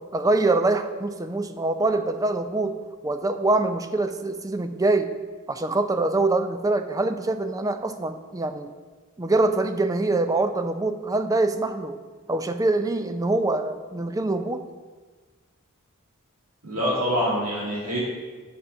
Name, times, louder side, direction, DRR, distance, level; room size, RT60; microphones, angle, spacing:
voice 1, 0.1-5.1 5.5-8.7 9.2-12.0 12.3-14.6, right 2 dB, 15° right, 9 dB, 0.4 m, -24 dB
voice 2, 16.6-18.0, equal, 85° right, -7 dB, 2.6 m, -25 dB
7.1 x 5.5 x 6.0 m, 1.4 s
head